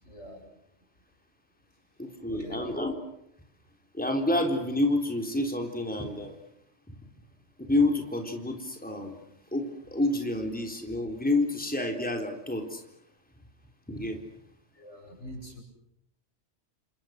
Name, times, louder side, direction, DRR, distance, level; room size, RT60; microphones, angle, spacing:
voice 1, 0.0-0.4 2.3-2.7 14.7-15.6, equal, 85° left, 3 dB, 8.4 m, -44 dB
voice 2, 2.0-3.0 3.9-6.4 6.9-7.0 7.6-9.2 9.5-12.8 13.9-14.2, left 2 dB, 5° left, 3 dB, 3.9 m, -28 dB
29.5 x 27.0 x 6.6 m, 0.76 s
omnidirectional pair, 1.2 m